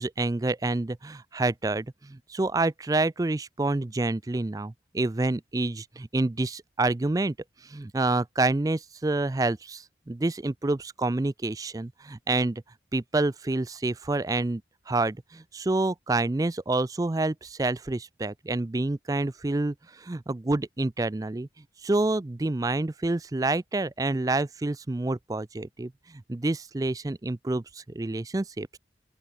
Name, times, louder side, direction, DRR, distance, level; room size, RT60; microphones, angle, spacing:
voice 1, 0.0-7.3 7.7-12.6 12.9-14.6 14.9-21.5 21.8-28.8, right 2 dB, 20° right, 0.4 m, -28 dB
open air
head